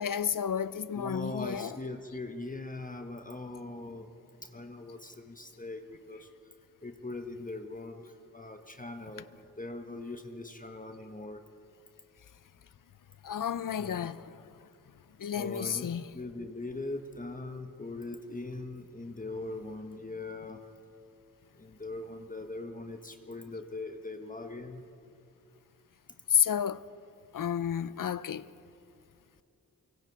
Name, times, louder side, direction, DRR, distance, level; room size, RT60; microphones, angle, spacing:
voice 1, 0.0-1.7 13.2-14.4 15.2-16.0 26.3-26.8 27.3-28.5, left 8 dB, 70° left, 0.6 m, -31 dB
voice 2, 0.9-4.1 4.4-6.3 6.8-9.3 9.6-11.4 13.8-14.1 15.3-15.9 16.1-20.6 21.5-24.8, left 2 dB, 25° left, 1.3 m, -41 dB
25.0 x 23.5 x 4.7 m
wide cardioid pair, 70°, 34 cm